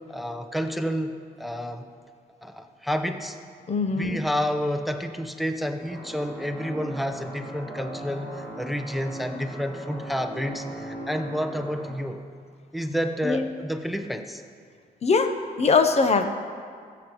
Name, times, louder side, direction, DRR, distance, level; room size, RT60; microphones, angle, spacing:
voice 1, 0.0-1.9 2.4-3.4 3.9-12.2 12.7-14.4, equal, ahead, 6 dB, 0.7 m, -30 dB
voice 2, 3.7-4.2 13.3-13.4 15.0-15.3 15.6-16.3, left 4 dB, 40° left, 7 dB, 0.8 m, -21 dB
sound 1, 5.8-11.9, right 1 dB, 15° left, 2.4 m, -38 dB
22.0 x 8.0 x 3.1 m, 2.1 s
cardioid pair, 85°, 16 cm